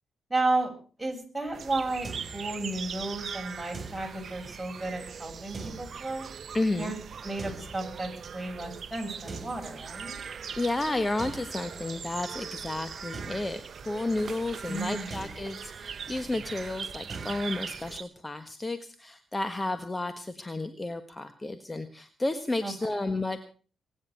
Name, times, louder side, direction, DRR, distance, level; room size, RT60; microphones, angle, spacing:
voice 1, 0.3-0.7 1.0-6.3 6.7-7.0 7.2-10.2 14.7-15.2 22.6-22.7, right 2 dB, 10° right, 2 dB, 7.1 m, -33 dB
sound 1, 1.5-17.9, right 3 dB, 35° right, 5.7 m, -47 dB
sound 2, 1.5-18.0, right 6 dB, 60° right, 0.8 m, -41 dB
voice 2, 6.5-6.9 10.6-23.4, left 2 dB, 20° left, 10 dB, 1.4 m, -32 dB
21.5 x 10.0 x 6.2 m, 0.40 s
supercardioid pair, 60°, 0 cm